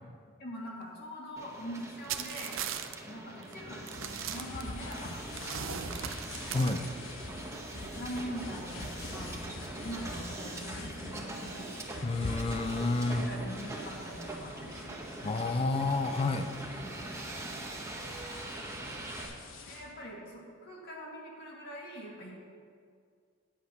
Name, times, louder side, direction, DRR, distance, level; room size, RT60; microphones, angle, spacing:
voice 1, 0.4-2.6 3.1-5.1 5.4-6.1 7.8-11.7 13.0-15.0 18.6-18.9 19.7-22.3, equal, 55° left, -2 dB, 2.1 m, -43 dB
Hiss, 1.4-19.2, right 2 dB, 15° right, 1.0 m, -43 dB
sound 1, 2.1-3.0 3.4-3.5 3.9-5.0 5.4-6.8, right 9 dB, 75° right, 0.6 m, -38 dB
sound 2, 3.9-19.9, left 2 dB, 75° left, 1.0 m, -45 dB
voice 2, 6.5-6.9 12.0-13.3 15.2-16.5, left 3 dB, 30° left, 7 dB, 0.4 m, -29 dB
10.0 x 8.2 x 5.3 m, 2.1 s
head